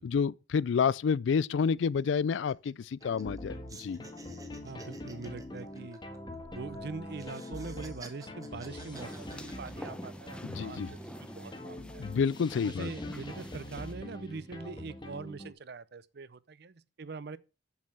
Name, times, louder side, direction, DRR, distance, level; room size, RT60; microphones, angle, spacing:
voice 1, 0.0-4.1 10.5-10.9 12.0-12.9, left 6 dB, 85° left, 0.4 m, -29 dB
sound 1, 0.9-1.0 1.3-1.5 1.8-3.4 3.7-6.8 7.1-10.3 10.7-11.3, right 3 dB, 20° right, 1.3 m, -52 dB
sound 2, 3.0-15.5, left 1 dB, 25° left, 1.4 m, -44 dB
voice 2, 4.6-6.0 6.5-12.1 12.6-17.4, right 4 dB, 60° right, 0.6 m, -43 dB
sound 3, 8.9-13.9, equal, 5° left, 0.8 m, -47 dB
7.0 x 6.5 x 6.3 m
head